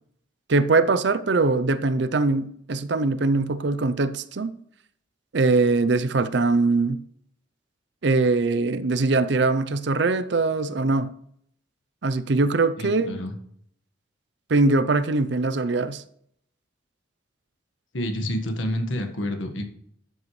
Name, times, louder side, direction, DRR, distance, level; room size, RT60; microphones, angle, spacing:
voice 1, 0.5-4.5 5.3-7.0 8.0-11.1 12.0-13.1 14.5-16.0, right 3 dB, 60° right, 0.6 m, -22 dB
voice 2, 12.8-13.4 17.9-19.6, left 1 dB, 75° left, 1.5 m, -28 dB
12.0 x 7.8 x 3.2 m
head